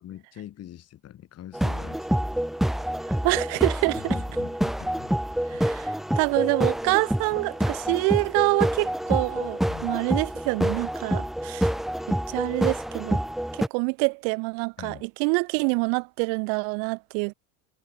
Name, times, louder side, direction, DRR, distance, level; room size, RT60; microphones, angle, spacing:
voice 1, 0.0-2.3 4.0-5.1 5.4-5.7 7.3-7.4 9.7-9.9 14.8-15.1, left 11 dB, 35° left, 2.5 m, -43 dB
sound 1, 1.5-13.7, equal, ahead, 0.4 m, -27 dB
voice 2, 3.1-4.2 5.5-11.7 12.1-13.2 13.6-17.3, right 40 dB or more, 60° right, 0.8 m, -26 dB
supercardioid pair, 115°, 42 cm